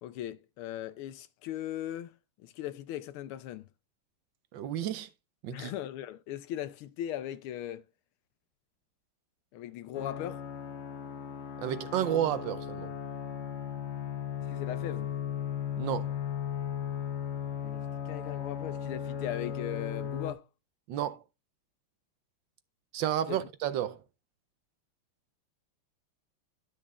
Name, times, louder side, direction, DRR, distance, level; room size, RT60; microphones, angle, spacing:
voice 1, 0.0-2.1 2.4-3.6 5.5-7.8 9.5-10.4 14.5-15.1 17.6-20.4 23.3-23.4, left 12 dB, 85° left, 1.5 m, -38 dB
voice 2, 4.5-5.1 5.4-5.7 11.6-12.9 15.8-16.1 20.9-21.2 22.9-24.0, right 11 dB, 70° right, 1.2 m, -31 dB
sound 1, 9.9-20.3, left 9 dB, 65° left, 0.6 m, -36 dB
12.0 x 6.1 x 2.3 m
omnidirectional pair, 2.3 m